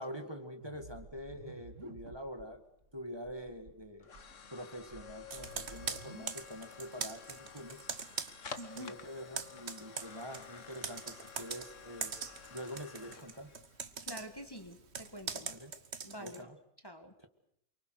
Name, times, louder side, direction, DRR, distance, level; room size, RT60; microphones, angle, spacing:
voice 1, 0.0-2.6 2.9-4.1 4.5-7.9 8.8-12.2 12.5-13.5 15.4-15.7 16.2-16.6, equal, 20° right, 5 dB, 2.0 m, -45 dB
sound 1, 0.6-2.5 2.8-2.9 3.2-3.7 4.1-6.2, right 3 dB, 80° right, 2.2 m, -53 dB
sound 2, 2.6-15.6, left 6 dB, 80° left, 1.8 m, -52 dB
Computer keyboard, 5.3-8.9 9.2-16.4, right 5 dB, 60° right, 1.6 m, -42 dB
voice 2, 8.6-9.0 14.0-15.5 16.0-16.5 16.8-17.1, equal, 20° left, 6 dB, 1.9 m, -47 dB
28.0 x 24.5 x 6.5 m, 0.72 s
omnidirectional pair, 1.3 m